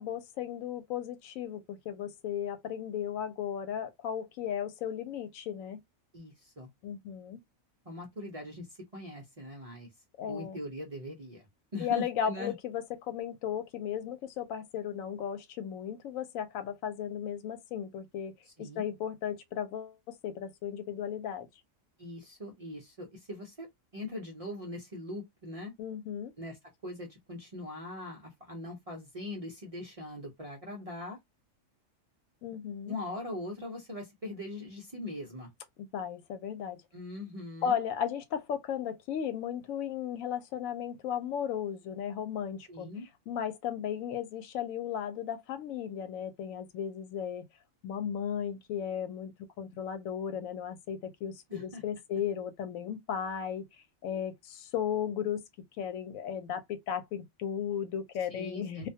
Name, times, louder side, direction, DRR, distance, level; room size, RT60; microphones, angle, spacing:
voice 1, 0.0-5.8 6.8-7.4 10.2-10.6 11.8-21.5 25.8-26.3 32.4-32.9 35.8-36.8 37.6-42.9 43.3-47.5 47.8-53.7 54.0-55.4 55.8-58.9, left 8 dB, 85° left, 1.0 m, -35 dB
voice 2, 6.1-6.7 7.9-9.9 10.3-11.5 11.7-12.5 18.6-18.8 22.0-23.7 23.9-25.7 26.4-31.2 32.9-35.5 36.9-37.8 42.7-43.1 51.5-51.8 58.3-58.9, left 1 dB, 40° right, 0.5 m, -41 dB
2.3 x 2.2 x 2.6 m
omnidirectional pair, 1.4 m